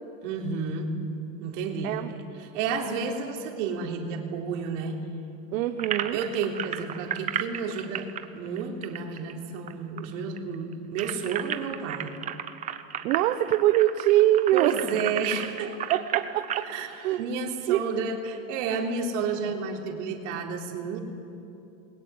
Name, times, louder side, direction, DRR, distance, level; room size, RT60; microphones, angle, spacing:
voice 1, 0.2-1.0 1.4-5.0 6.1-12.1 14.5-15.8 16.6-16.9 17.2-21.0, right 5 dB, 65° right, 2 dB, 3.7 m, -31 dB
voice 2, 5.5-6.2 13.0-14.8 15.9-17.2 17.7-17.8, right 13 dB, 80° right, 7 dB, 1.3 m, -23 dB
sound 1, 5.8-9.7 10.0-10.1 10.4-16.7, right 10 dB, 20° right, 0.7 m, -33 dB
28.0 x 21.5 x 9.7 m, 2.8 s
cardioid pair, 180°, 39 cm